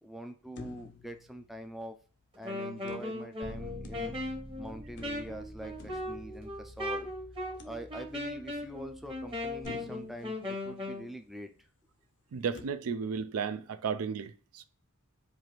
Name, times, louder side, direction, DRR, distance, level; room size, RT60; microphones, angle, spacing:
voice 1, 0.0-2.0 2.4-4.1 4.6-7.1 7.6-11.5, right 1 dB, ahead, 0.3 m, -44 dB
sound 1, 0.6-2.2 2.9-4.5 5.0-6.9 7.6-8.4 8.9-9.0 9.6-11.3 12.5-12.6, left 2 dB, 55° left, 0.5 m, -52 dB
Wind instrument woodwind instrument, 2.3-11.1, left 1 dB, 25° right, 0.9 m, -38 dB
Bass guitar, 3.4-9.7, equal, 45° right, 1.4 m, -48 dB
voice 2, 12.3-14.6, right 6 dB, 70° right, 0.4 m, -34 dB
4.6 x 2.5 x 3.1 m
head